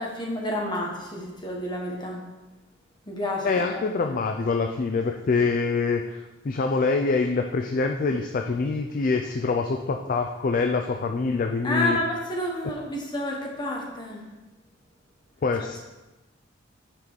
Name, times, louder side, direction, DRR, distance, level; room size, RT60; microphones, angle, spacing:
voice 1, 0.0-2.2 3.0-3.8 11.6-14.2, left 1 dB, 25° left, -1 dB, 1.2 m, -30 dB
voice 2, 3.4-6.2 6.4-12.0 15.4-15.8, left 4 dB, 45° left, 4 dB, 0.4 m, -25 dB
5.9 x 5.1 x 4.6 m, 1.1 s
head